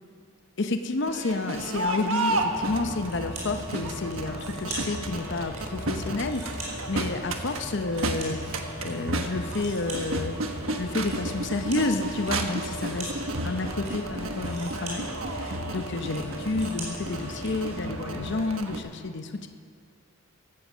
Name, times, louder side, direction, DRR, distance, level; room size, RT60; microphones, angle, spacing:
voice 1, 0.6-8.4 8.8-10.4 10.7-13.1 13.4-19.5, left 3 dB, 60° left, 7 dB, 0.7 m, -30 dB
Crowd, 1.0-18.8, right 2 dB, 80° right, 1.3 m, -33 dB
sound 1, 2.3-18.4, left 1 dB, 10° right, 2.8 m, -40 dB
sound 2, 3.0-3.8 4.1-5.6 6.0-8.9 9.2-17.5, right 2 dB, 35° right, 4.3 m, -43 dB
15.5 x 13.5 x 6.2 m, 2.2 s
head